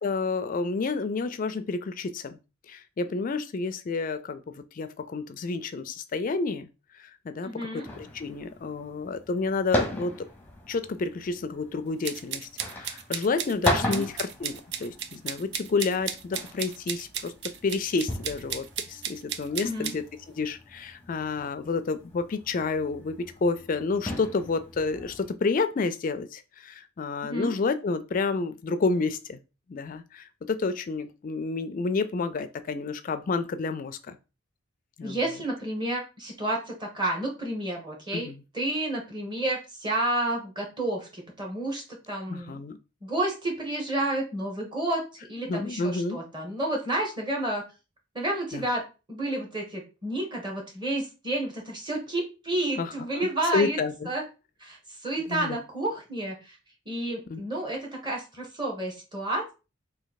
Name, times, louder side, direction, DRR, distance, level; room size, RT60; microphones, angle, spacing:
voice 1, 0.0-2.4 2.7-6.7 7.0-10.3 10.7-12.5 12.8-20.0 20.4-29.4 29.7-34.2 35.0-35.2 38.1-38.4 42.3-42.8 45.5-46.2 48.5-48.7 52.8-54.1 55.3-55.6 57.3-57.4, left 4 dB, 40° left, 0.3 m, -30 dB
voice 2, 7.4-7.9 13.8-14.0 19.6-19.9 27.2-27.6 35.0-38.3 38.5-42.6 43.0-47.6 48.1-53.8 54.0-54.2 54.6-56.6 56.9-59.5, right 1 dB, 25° right, 1.2 m, -30 dB
sound 1, 7.8-25.3, left 1 dB, 10° left, 0.7 m, -37 dB
sound 2, 12.0-20.0, right 9 dB, 55° right, 0.4 m, -34 dB
3.1 x 2.6 x 4.0 m
head